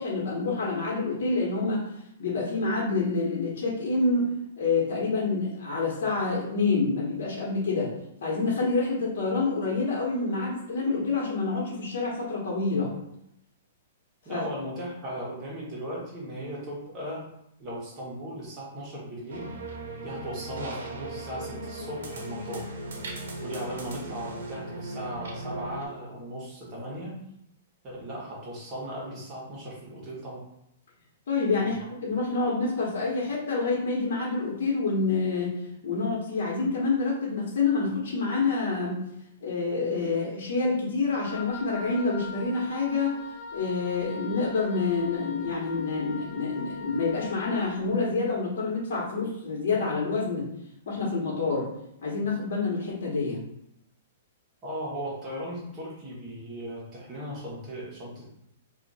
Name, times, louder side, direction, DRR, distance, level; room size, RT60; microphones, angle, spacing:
voice 1, 0.0-1.8 2.2-7.9 8.2-12.9 14.3-14.4 31.3-35.5 35.8-39.0 39.4-43.2 43.5-50.5 50.9-51.7 52.0-53.4, left 3 dB, 70° left, -4 dB, 1.2 m, -27 dB
voice 2, 14.2-17.2 17.6-19.5 20.0-22.7 23.4-27.2 27.8-30.5 31.6-31.7 54.6-58.3, equal, 25° right, -5 dB, 1.2 m, -37 dB
sound 1, 19.3-25.9, right 2 dB, 85° right, 0.8 m, -38 dB
Wind instrument woodwind instrument, 41.2-47.7, left 4 dB, 5° left, 0.9 m, -41 dB
2.7 x 2.5 x 4.1 m, 0.77 s
hypercardioid pair, 155°, 0 cm